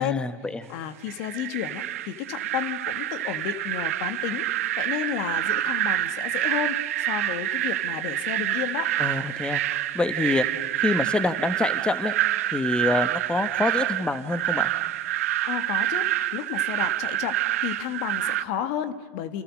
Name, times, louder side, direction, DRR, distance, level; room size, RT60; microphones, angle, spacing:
voice 1, 0.0-0.7 9.0-10.4 10.7-12.1 12.5-14.7, left 2 dB, 10° left, 11 dB, 1.5 m, -26 dB
voice 2, 0.7-4.4 4.8-8.9 15.4-16.1 16.3-19.4, left 10 dB, 60° left, 10 dB, 1.7 m, -32 dB
sound 1, 1.1-18.4, right 13 dB, 75° right, 1.0 m, -27 dB
29.5 x 28.5 x 6.5 m, 1.5 s
hypercardioid pair, 95°, 8 cm